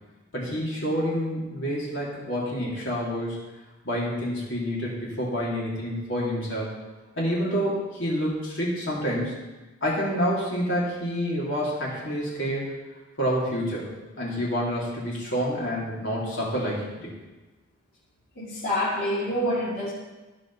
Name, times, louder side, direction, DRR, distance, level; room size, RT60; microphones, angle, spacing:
voice 1, 0.3-3.4 3.8-6.7 7.2-9.3 9.8-12.7 13.2-13.9 14.2-17.1, equal, 60° left, -6 dB, 3.2 m, -28 dB
voice 2, 18.4-19.9, left 1 dB, 45° left, -10 dB, 2.3 m, -27 dB
15.0 x 5.5 x 4.2 m, 1.2 s
head